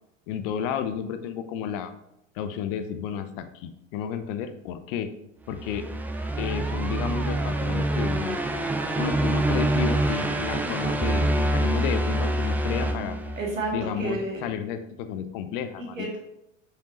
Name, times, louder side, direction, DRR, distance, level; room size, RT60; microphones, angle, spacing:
voice 1, 0.3-1.9 2.3-5.1 5.5-5.9 6.4-8.4 8.9-13.2 13.7-16.1, left 8 dB, 45° left, 9 dB, 0.7 m, -32 dB
sound 1, 5.5-13.8, right 1 dB, 5° right, 0.4 m, -26 dB
voice 2, 13.4-14.5 16.0-16.2, right 2 dB, 85° right, -1 dB, 1.9 m, -30 dB
6.8 x 5.1 x 3.1 m, 0.83 s
figure-of-eight pair, 85°, 39 cm